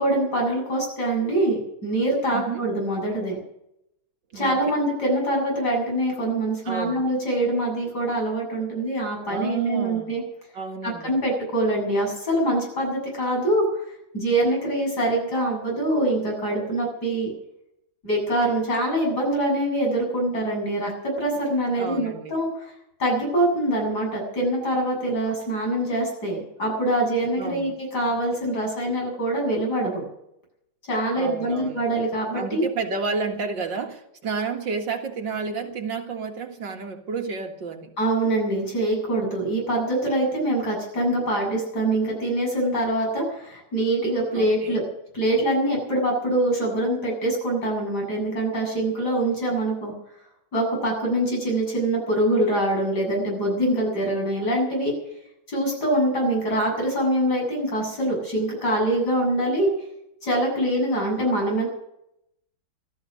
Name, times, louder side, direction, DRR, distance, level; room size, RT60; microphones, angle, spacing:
voice 1, 0.0-3.4 4.3-10.2 10.8-13.7 14.1-17.3 18.0-22.5 23.0-30.0 30.9-32.6 38.0-44.8 45.1-49.9 50.5-55.0 55.5-59.7 60.2-61.7, right 1 dB, 55° left, 0 dB, 8.4 m, -24 dB
voice 2, 2.3-2.6 4.3-4.8 6.7-7.0 9.3-10.1 10.5-11.1 21.7-22.3 27.4-27.7 31.2-31.9 32.3-37.9 44.3-44.9, right 4 dB, 65° right, 3 dB, 2.4 m, -31 dB
16.0 x 13.5 x 6.5 m, 0.79 s
omnidirectional pair, 2.1 m